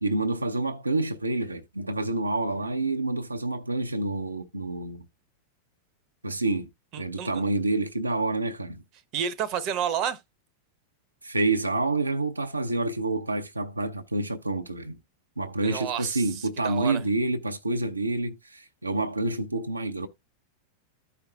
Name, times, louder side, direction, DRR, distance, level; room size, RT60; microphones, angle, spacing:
voice 1, 0.0-5.0 6.2-6.7 7.0-8.8 11.2-15.0 15.4-20.1, right 2 dB, 80° right, 0.6 m, -28 dB
voice 2, 6.9-7.3 9.1-10.2 15.6-16.2 16.6-17.0, right 8 dB, 40° right, 0.8 m, -30 dB
14.0 x 5.0 x 2.3 m
figure-of-eight pair, 90°, 0 cm